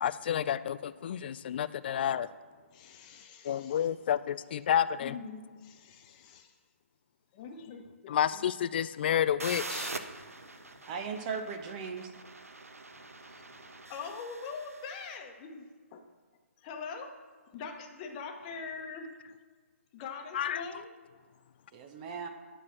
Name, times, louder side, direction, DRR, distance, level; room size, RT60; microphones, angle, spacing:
voice 1, 0.0-2.3 3.4-5.2 8.1-9.9 20.3-20.6, left 9 dB, 45° left, 15 dB, 0.4 m, -30 dB
voice 2, 2.7-3.9 5.0-6.5 7.3-8.4 13.9-16.0 16.6-17.1 17.5-19.1 19.9-20.9, left 5 dB, 30° left, 4 dB, 1.1 m, -43 dB
sound 1, 9.4-15.1, right 3 dB, 85° right, 0.8 m, -43 dB
voice 3, 10.9-12.1 21.7-22.3, right 5 dB, 30° right, 5 dB, 1.0 m, -37 dB
9.9 x 4.7 x 6.0 m, 1.5 s
figure-of-eight pair, 140°, 8 cm